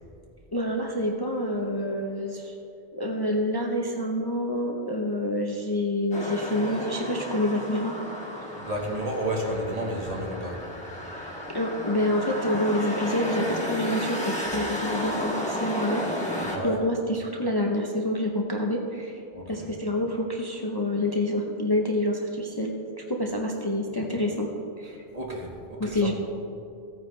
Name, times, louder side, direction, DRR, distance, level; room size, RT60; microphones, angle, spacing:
voice 1, 0.5-2.5 2.9-8.0 11.5-16.3 16.6-19.2 19.5-22.7 23.1-24.5 24.8-25.0 25.8-26.1, left 1 dB, 25° left, 0 dB, 0.7 m, -27 dB
sound 1, 6.1-16.6, left 1 dB, 5° left, 1.8 m, -33 dB
voice 2, 8.6-10.7 16.4-16.8 19.3-19.7 25.1-26.1, right 1 dB, 40° right, -2 dB, 1.8 m, -31 dB
15.5 x 9.2 x 3.3 m, 2.6 s
omnidirectional pair, 1.0 m